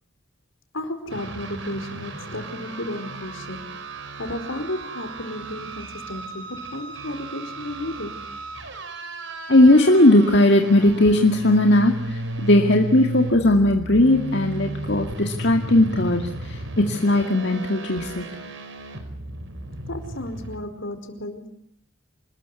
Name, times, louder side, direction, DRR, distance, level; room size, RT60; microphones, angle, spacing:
voice 1, 0.7-3.7 4.2-8.3 19.9-21.5, left 1 dB, 75° left, 8 dB, 4.6 m, -33 dB
sound 1, 1.1-20.6, right 2 dB, 70° right, 5.2 m, -34 dB
voice 2, 9.5-18.3, left 1 dB, 55° left, 3 dB, 2.2 m, -18 dB
27.5 x 21.0 x 9.7 m, 0.68 s
head